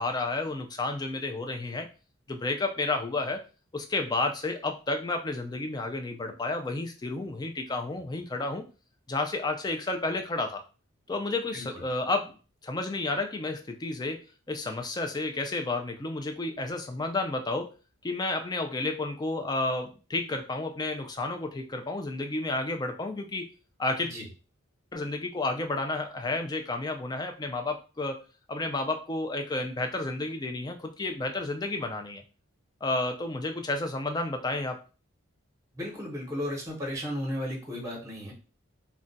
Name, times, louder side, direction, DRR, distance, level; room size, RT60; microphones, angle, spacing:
voice 1, 0.0-1.9 2.3-3.4 3.7-8.6 9.1-10.6 11.1-12.4 12.6-17.7 18.0-23.5 23.8-24.1 24.9-28.2 28.5-32.2 32.8-34.8, left 2 dB, 20° left, 5 dB, 0.3 m, -31 dB
voice 2, 11.5-11.8 24.0-24.3 35.7-38.3, equal, 15° right, -2 dB, 0.8 m, -34 dB
2.3 x 2.1 x 3.8 m, 0.34 s
head